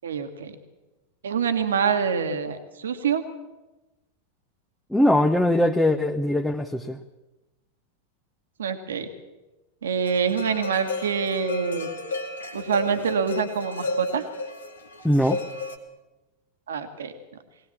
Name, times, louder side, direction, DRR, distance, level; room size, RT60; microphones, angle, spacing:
voice 1, 0.0-0.5 1.2-3.2 8.6-9.1 9.8-11.9 12.5-14.2 16.7-17.1, right 6 dB, 65° right, 8 dB, 1.6 m, -26 dB
voice 2, 4.9-7.0 15.0-15.4, left 1 dB, 5° left, 4 dB, 1.0 m, -21 dB
sound 1, 10.0-15.8, left 2 dB, 75° left, 2.2 m, -33 dB
21.5 x 18.0 x 7.3 m, 1.1 s
figure-of-eight pair, 90°, 0 cm